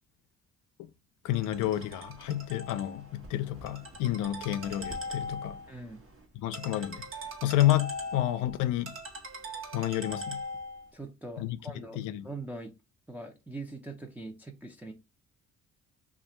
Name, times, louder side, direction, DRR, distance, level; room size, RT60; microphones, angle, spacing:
voice 1, 1.2-5.6 6.3-7.0 7.4-8.9 9.7-10.4 11.4-12.3, left 14 dB, 90° left, 0.5 m, -30 dB
Ringtone, 1.3-10.9, left 1 dB, 45° right, 1.0 m, -41 dB
voice 2, 5.7-6.0 10.9-12.7 13.1-14.9, right 2 dB, 5° right, 0.5 m, -42 dB
2.8 x 2.5 x 4.2 m
cardioid pair, 90°, 30 cm